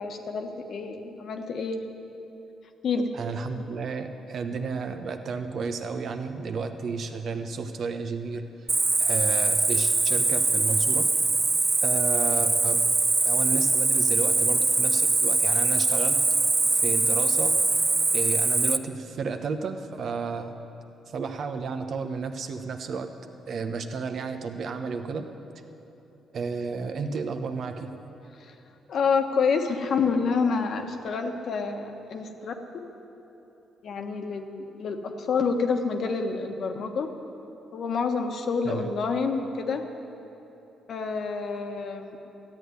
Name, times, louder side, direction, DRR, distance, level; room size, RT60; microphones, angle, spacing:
voice 1, 0.0-1.8 2.8-3.1 28.4-28.5 28.9-32.5 33.8-37.1 37.7-39.9 40.9-42.2, left 5 dB, 60° left, 5 dB, 1.3 m, -28 dB
voice 2, 3.1-8.4 9.0-11.1 11.8-12.8 13.2-16.2 16.7-17.6 18.1-20.5 21.1-23.1 23.5-25.3 26.3-27.9 38.6-38.9, right 5 dB, 60° right, 7 dB, 1.0 m, -32 dB
Cricket, 8.7-18.8, right 3 dB, 25° right, 0.5 m, -23 dB
13.5 x 8.5 x 9.6 m, 3.0 s
cardioid pair, 90°, 0 cm